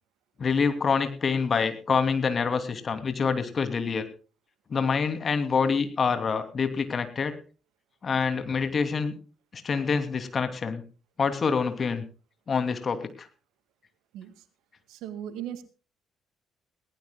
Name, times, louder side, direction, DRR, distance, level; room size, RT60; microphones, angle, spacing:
voice 1, 0.4-4.1 4.7-7.3 8.0-9.1 9.5-10.8 11.2-12.0 12.5-13.3, left 5 dB, 45° left, 9 dB, 2.7 m, -26 dB
voice 2, 14.1-14.4 14.9-15.6, right 10 dB, 75° right, 12 dB, 2.0 m, -37 dB
19.5 x 18.0 x 2.2 m, 0.35 s
hypercardioid pair, 50°, 0 cm